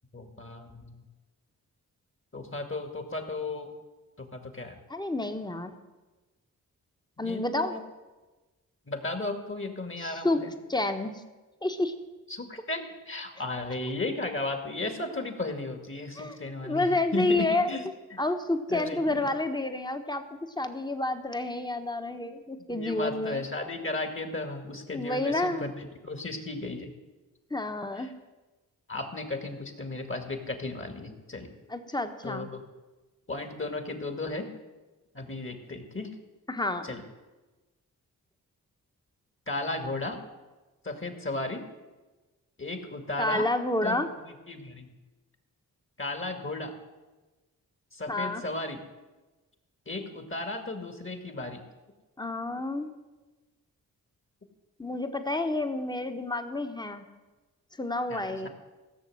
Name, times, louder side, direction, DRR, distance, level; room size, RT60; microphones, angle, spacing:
voice 1, 0.1-1.0 2.3-3.7 4.2-4.8 7.2-7.8 8.9-10.5 12.3-17.8 18.1-18.2 18.7-19.3 22.7-26.9 27.9-28.1 28.9-31.5 32.2-32.6 33.3-34.5 35.1-36.1 36.8-37.0 39.5-40.2 40.8-41.6 42.6-43.5 43.8-44.1 44.5-44.9 46.0-46.7 47.9-48.8 49.9-51.6 58.1-58.5, left 2 dB, 35° left, 5 dB, 2.4 m, -35 dB
voice 2, 4.9-5.7 7.2-7.7 10.0-10.4 10.7-11.2 11.6-11.9 16.2-16.4 16.6-17.7 18.2-20.2 20.6-23.4 24.9-25.7 27.5-28.1 31.7-32.5 36.5-36.9 43.2-44.1 48.1-48.4 52.2-52.9 54.8-57.0 57.8-58.5, left 2 dB, 10° left, 7 dB, 1.5 m, -29 dB
15.5 x 6.8 x 7.9 m, 1.2 s
cardioid pair, 45°, 37 cm